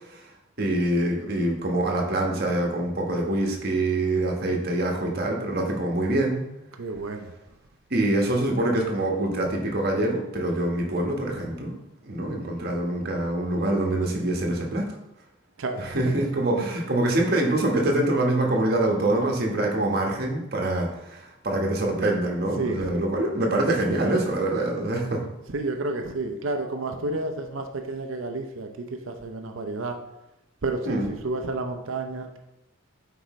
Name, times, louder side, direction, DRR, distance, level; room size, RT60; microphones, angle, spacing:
voice 1, 0.6-6.5 7.9-11.7 12.0-14.8 15.8-25.2 30.8-31.1, right 1 dB, 50° right, 0 dB, 1.2 m, -25 dB
voice 2, 6.8-7.3 15.6-15.9 22.6-23.1 25.5-30.0 30.6-32.4, right 2 dB, 75° right, 5 dB, 0.6 m, -31 dB
8.0 x 4.6 x 3.1 m, 0.91 s
head